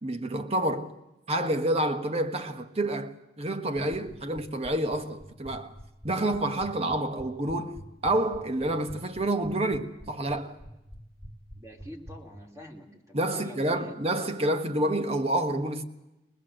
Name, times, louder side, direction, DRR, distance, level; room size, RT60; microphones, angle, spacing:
voice 1, 0.0-0.9 1.3-5.7 6.0-10.6 13.1-15.8, right 1 dB, 35° right, 1.4 m, -28 dB
sound 1, 3.8-12.2, equal, 10° left, 1.9 m, -45 dB
voice 2, 11.6-13.9, left 1 dB, 15° right, 3.1 m, -46 dB
24.0 x 19.5 x 7.8 m
head